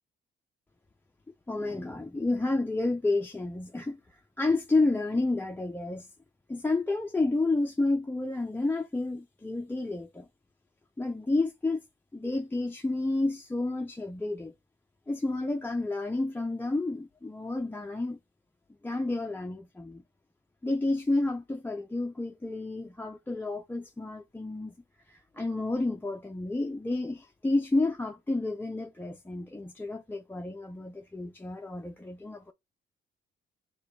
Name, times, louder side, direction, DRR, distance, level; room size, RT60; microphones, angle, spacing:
voice 1, 1.5-6.1 6.5-10.3 11.0-11.8 12.1-14.5 15.1-18.2 18.8-20.0 20.6-24.7 25.1-32.5, left 2 dB, 10° left, 0.5 m, -30 dB
4.9 x 2.3 x 4.1 m
cardioid pair, 90°, 20 cm